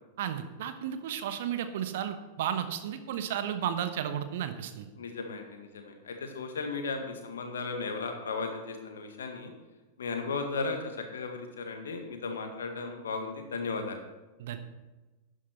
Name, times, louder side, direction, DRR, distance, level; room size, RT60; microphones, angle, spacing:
voice 1, 0.2-4.9 14.4-14.6, right 9 dB, 55° right, 9 dB, 1.1 m, -33 dB
voice 2, 5.0-9.5 10.0-10.8 11.1-14.0, left 4 dB, 65° left, 5 dB, 1.9 m, -35 dB
11.5 x 9.9 x 4.6 m, 1.1 s
figure-of-eight pair, 90°, 0 cm